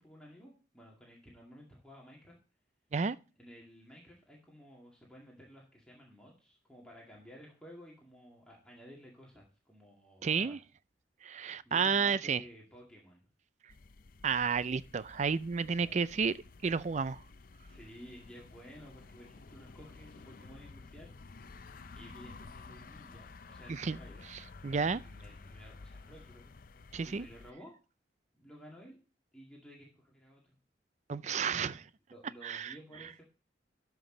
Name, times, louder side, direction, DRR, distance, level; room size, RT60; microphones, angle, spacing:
voice 1, 0.0-2.4 3.4-10.6 11.7-13.2 15.7-15.9 17.7-21.1 21.9-24.2 24.9-27.7 28.3-29.0 29.3-30.6 31.6-31.8 32.1-33.2, equal, 5° left, 2.2 m, -54 dB
voice 2, 10.2-10.6 11.2-12.4 14.2-16.3 16.6-17.2 23.7-24.0 24.6-25.0 26.9-27.3 31.1-31.8 32.4-32.7, right 5 dB, 40° right, 0.4 m, -31 dB
sound 1, 13.7-27.5, left 3 dB, 50° left, 0.6 m, -52 dB
12.5 x 6.0 x 3.8 m
head